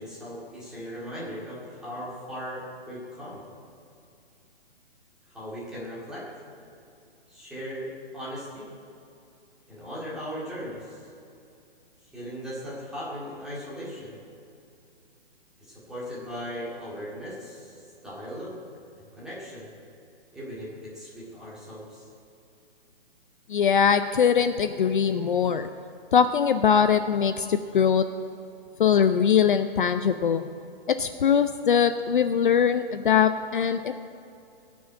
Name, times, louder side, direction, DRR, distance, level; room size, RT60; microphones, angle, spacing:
voice 1, 0.0-3.4 5.3-6.4 7.3-8.7 9.7-11.0 12.1-14.2 15.6-18.6 19.2-19.7 20.3-22.1, equal, ahead, -8 dB, 2.1 m, -38 dB
voice 2, 23.5-25.7 26.1-28.0 28.8-30.5 30.9-33.9, left 7 dB, 55° left, 9 dB, 0.6 m, -22 dB
18.5 x 6.3 x 8.5 m, 2.6 s
hypercardioid pair, 175°, 30 cm